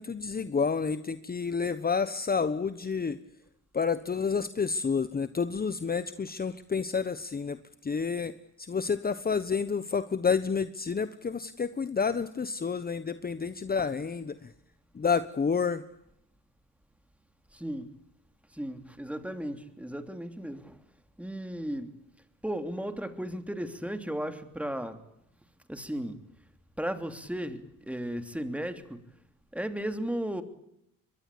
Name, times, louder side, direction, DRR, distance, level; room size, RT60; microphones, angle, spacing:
voice 1, 0.0-3.2 3.7-14.5 14.9-15.8, left 5 dB, 25° left, 1.2 m, -29 dB
voice 2, 17.5-17.9 18.5-20.8 21.2-21.9 22.4-25.0 25.7-26.2 26.8-29.0 29.5-30.4, right 1 dB, 5° right, 3.1 m, -35 dB
23.5 x 22.0 x 8.6 m
cardioid pair, 90°, 33 cm